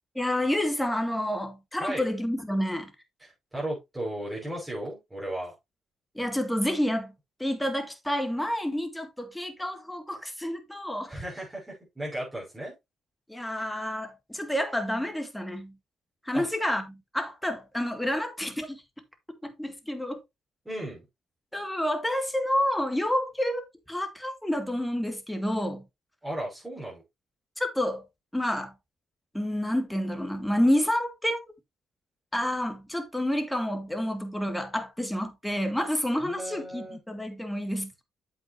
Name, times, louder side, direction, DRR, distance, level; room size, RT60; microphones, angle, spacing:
voice 1, 0.2-2.9 6.2-7.1 7.4-11.1 13.3-15.7 16.3-18.8 19.4-20.2 21.5-25.8 27.6-28.0 28.3-28.7 29.3-31.4 32.3-38.0, left 1 dB, 5° left, 2.0 m, -29 dB
voice 2, 3.5-5.5 11.1-12.7 16.3-16.5 20.6-21.0 26.2-27.0 36.2-37.0, right 1 dB, 10° right, 5.7 m, -35 dB
8.3 x 7.8 x 2.7 m
cardioid pair, 90°, 0 cm